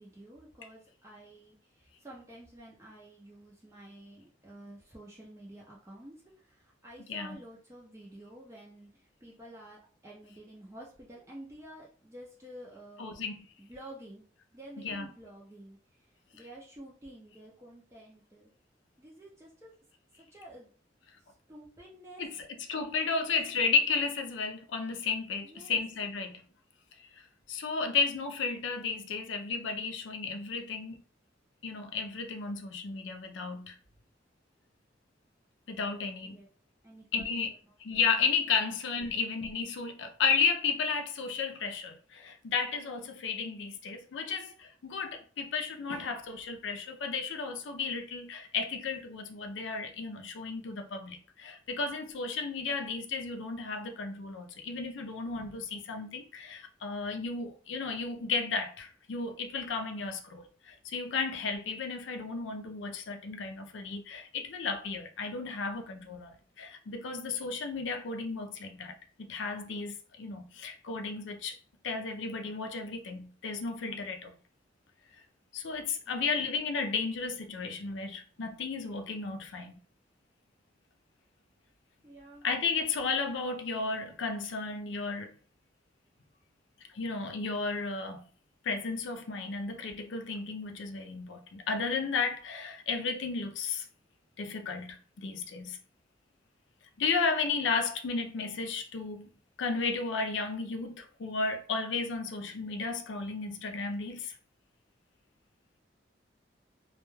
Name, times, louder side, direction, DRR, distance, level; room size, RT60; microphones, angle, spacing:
voice 1, 0.0-13.2 13.6-14.2 14.5-18.5 19.0-19.7 20.2-20.7 21.3-22.2 23.2-23.6 25.4-25.8 36.2-36.5 36.8-38.0 38.5-38.7 76.1-76.3 82.0-82.5, right 1 dB, 15° right, 0.4 m, -51 dB
voice 2, 13.0-13.4 14.8-15.1 22.2-22.3 22.7-26.4 27.5-31.0 31.6-33.8 35.7-36.4 37.1-37.5 37.8-71.6 71.8-74.3 75.5-79.8 82.4-85.4 86.9-88.2 88.6-93.9 94.4-95.8 97.0-99.3 99.6-104.4, left 4 dB, 85° left, 0.4 m, -33 dB
2.2 x 2.2 x 3.0 m
head